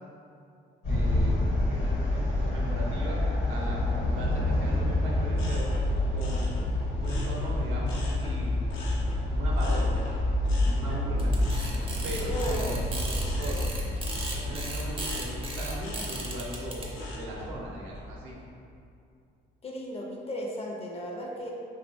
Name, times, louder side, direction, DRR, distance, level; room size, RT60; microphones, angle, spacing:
sound 1, 0.8-18.3, left 1 dB, 60° left, 0.9 m, -28 dB
voice 1, 0.9-1.4 1.7-3.2 3.5-3.8 4.1-5.7 6.1-6.5 7.0-8.5 9.3-10.0 10.6-11.3 12.0-13.6 14.3-16.8 17.1-18.3, right 1 dB, 90° right, -4 dB, 0.6 m, -38 dB
sound 2, 5.3-8.4 8.7-17.5 18.0-18.4, left 2 dB, 85° left, 0.5 m, -44 dB
sound 3, 11.2-16.9, right 2 dB, 25° right, 0.4 m, -37 dB
voice 2, 12.2-12.8 19.6-21.5, left 1 dB, 30° left, -2 dB, 0.4 m, -35 dB
2.6 x 2.1 x 2.8 m, 2.5 s
cardioid pair, 90°, 20 cm